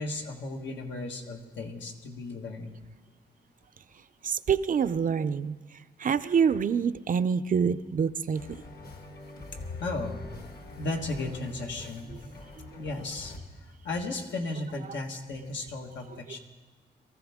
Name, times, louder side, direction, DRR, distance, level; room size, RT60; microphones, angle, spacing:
voice 1, 0.0-2.8 9.5-10.3 10.8-12.2 12.8-16.4, left 2 dB, 85° left, 2 dB, 1.7 m, -35 dB
voice 2, 4.2-5.6 6.0-8.4 12.6-12.8 14.9-15.0, right 6 dB, 50° right, 12 dB, 0.5 m, -26 dB
sound 1, 8.3-13.4, left 2 dB, 60° left, 1.6 m, -46 dB
23.0 x 14.5 x 3.6 m, 1.3 s
wide cardioid pair, 115°, 18 cm